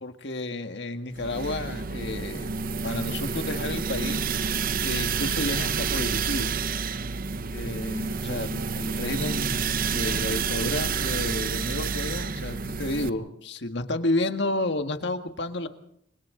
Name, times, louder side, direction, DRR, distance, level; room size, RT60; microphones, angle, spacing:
voice 1, 0.0-2.5 2.8-6.6 7.5-15.7, left 2 dB, 65° left, 7 dB, 1.8 m, -31 dB
sound 1, 1.2-13.1, right 5 dB, 50° right, 0.8 m, -29 dB
30.0 x 25.0 x 3.9 m, 0.69 s
head